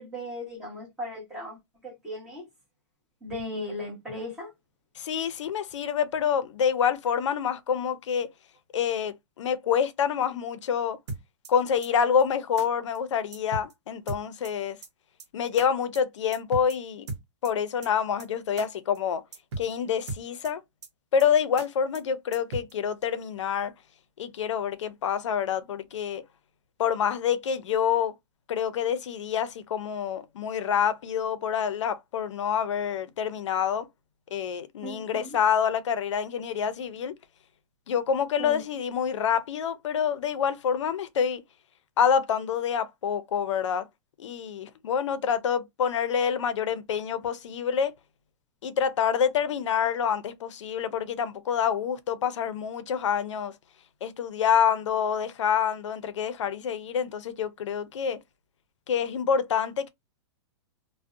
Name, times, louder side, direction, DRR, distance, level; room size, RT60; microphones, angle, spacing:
voice 1, 0.0-2.4 3.2-4.5 34.8-35.4 38.4-38.6, left 1 dB, 5° right, 0.9 m, -37 dB
voice 2, 5.0-8.3 8.7-11.0 11.5-14.8 15.3-17.1 17.4-19.2 19.6-20.6 21.1-23.7 24.2-26.2 26.8-28.1 28.5-33.9 34.3-37.1 37.9-41.4 42.0-43.9 44.2-47.9 48.6-53.5 54.0-58.2 58.9-59.9, left 7 dB, 90° left, 0.5 m, -27 dB
sound 1, 11.1-11.5 11.8-11.9 12.2-12.3 12.6-12.7 12.9-13.0 13.3-13.7 14.1-14.5 14.8-14.9 15.2-15.3 15.6-15.7 15.9-16.0 16.3-16.8 17.1-17.5 17.8-17.9 18.2-18.3 18.6-18.7 18.9-19.0 19.3-19.7 20.1-20.5 20.8-20.9 21.2-21.3 21.6-21.7 21.9-22.0 22.3-22.7, right 3 dB, 70° right, 0.7 m, -36 dB
2.5 x 2.0 x 2.4 m
hypercardioid pair, 180°, 15 cm